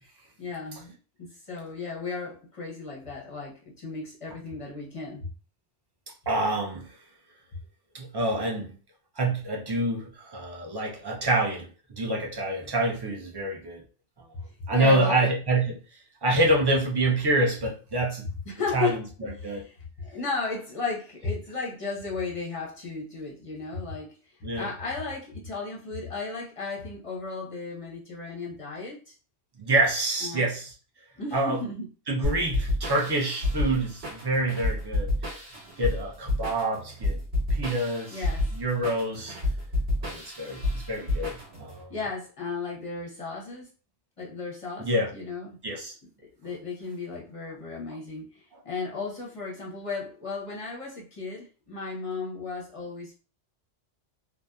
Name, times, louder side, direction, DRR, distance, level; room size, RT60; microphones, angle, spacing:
voice 1, 0.4-5.3 14.7-15.3 18.5-24.2 24.5-29.1 30.2-30.5 31.2-31.9 38.1-38.5 41.9-43.7 44.2-45.6 46.4-53.2, left 4 dB, 35° left, 0.7 m, -35 dB
voice 2, 6.3-6.9 7.9-8.7 9.2-13.8 14.7-15.8 16.2-18.3 18.7-19.6 24.4-24.7 29.6-30.7 31.3-31.6 32.1-35.1 35.8-37.2 37.5-38.2 38.5-39.4 40.0-41.9 44.8-45.1 45.6-45.9, right 1 dB, 40° right, 0.3 m, -27 dB
sound 1, 32.2-41.8, left 1 dB, 70° right, 1.2 m, -30 dB
2.7 x 2.2 x 2.3 m
omnidirectional pair, 1.2 m